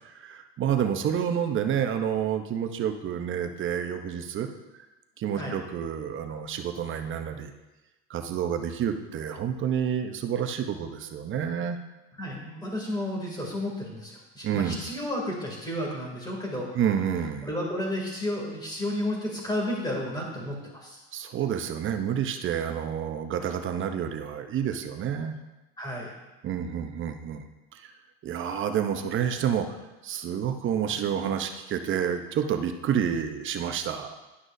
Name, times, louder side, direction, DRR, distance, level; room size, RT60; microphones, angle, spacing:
voice 1, 0.1-4.5 5.2-7.5 8.1-11.8 14.4-14.8 16.7-17.5 21.1-25.4 26.4-27.4 27.7-27.9 28.2-29.8 30.0-34.2, right 8 dB, 40° right, 7 dB, 0.8 m, -29 dB
voice 2, 12.2-16.7 17.4-21.0 25.8-26.1, left 1 dB, 15° left, -2 dB, 2.7 m, -32 dB
11.0 x 6.1 x 2.7 m, 1.1 s
supercardioid pair, 110°, 32 cm